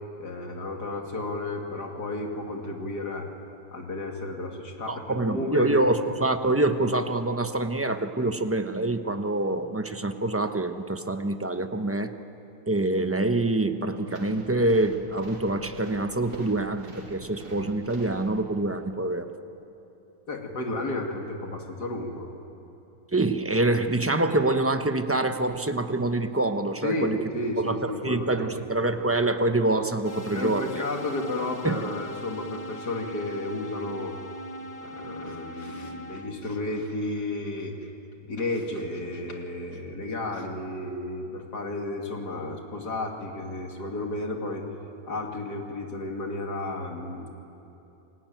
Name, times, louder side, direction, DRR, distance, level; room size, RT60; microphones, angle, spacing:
voice 1, 0.2-3.3 3.7-5.8 20.3-22.3 26.8-28.6 30.3-34.2 34.8-37.9 38.2-44.6 45.1-47.3, left 2 dB, 65° left, 2 dB, 3.0 m, -32 dB
voice 2, 4.9-12.1 12.7-19.3 23.1-27.2 27.6-30.8 31.6-31.9, right 2 dB, 15° right, 7 dB, 0.6 m, -26 dB
sound 1, 14.1-18.8, right 2 dB, 85° right, 4.0 m, -46 dB
sound 2, 30.0-36.2, equal, 90° left, 3.1 m, -40 dB
28.5 x 20.0 x 9.2 m, 2.9 s
omnidirectional pair, 1.9 m